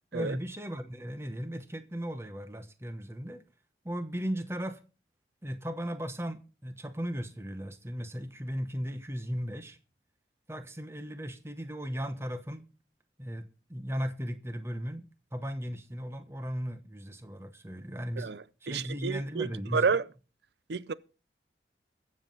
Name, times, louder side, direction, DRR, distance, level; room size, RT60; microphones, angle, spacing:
voice 1, 0.1-3.4 3.8-4.8 5.4-9.8 10.5-12.7 13.2-13.4 13.7-18.3 18.6-19.9, equal, 15° right, 1.0 m, -36 dB
voice 2, 18.2-20.0 20.7-20.9, right 5 dB, 75° right, 0.5 m, -30 dB
22.0 x 7.5 x 3.9 m
head